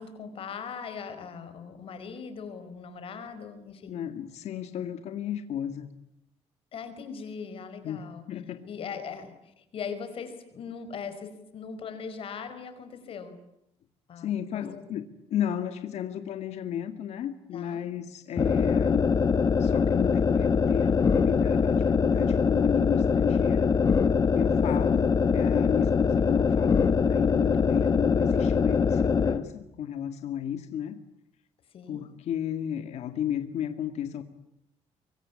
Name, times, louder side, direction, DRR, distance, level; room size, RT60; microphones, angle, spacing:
voice 1, 0.0-4.0 6.7-8.2 8.6-13.4 14.1-14.3 14.5-14.8 17.5-17.8 24.8-25.1 31.7-32.0, left 6 dB, 55° left, 10 dB, 4.8 m, -40 dB
voice 2, 3.9-5.9 7.8-8.7 14.2-19.2 19.6-23.8 24.3-31.0 31.9-34.2, left 10 dB, 75° left, 8 dB, 2.1 m, -33 dB
sound 1, 18.4-29.4, left 5 dB, 35° left, 1.6 m, -23 dB
25.5 x 23.5 x 9.7 m, 0.82 s
cardioid pair, 145°, 11 cm